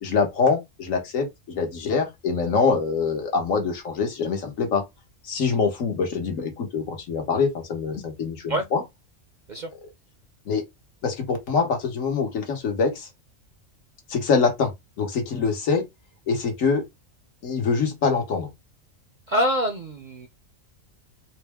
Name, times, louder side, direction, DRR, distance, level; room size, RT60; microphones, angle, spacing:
voice 1, 0.0-4.8 5.2-8.8 10.5-10.6 11.0-13.1 14.1-14.7 15.0-15.8 16.3-16.8 17.4-18.5, left 5 dB, 85° left, 1.5 m, -24 dB
voice 2, 19.3-20.3, equal, 60° right, 0.5 m, -25 dB
4.0 x 2.1 x 3.4 m
omnidirectional pair, 1.3 m